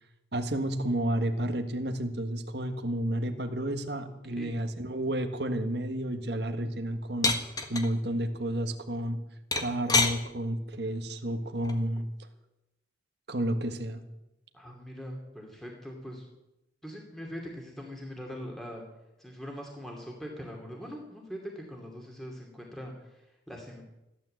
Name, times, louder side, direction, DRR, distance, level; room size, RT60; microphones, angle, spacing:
voice 1, 0.3-7.4 7.7-9.2 9.6-12.1 13.3-14.0, right 1 dB, 60° right, 7 dB, 1.6 m, -31 dB
voice 2, 3.9-4.6 14.5-16.2 16.8-18.8 19.2-23.8, equal, ahead, -1 dB, 2.5 m, -42 dB
sound 1, 7.2-7.9 9.5-10.2 11.6-12.0, left 3 dB, 20° left, 1.4 m, -25 dB
15.0 x 12.0 x 7.8 m, 0.92 s
head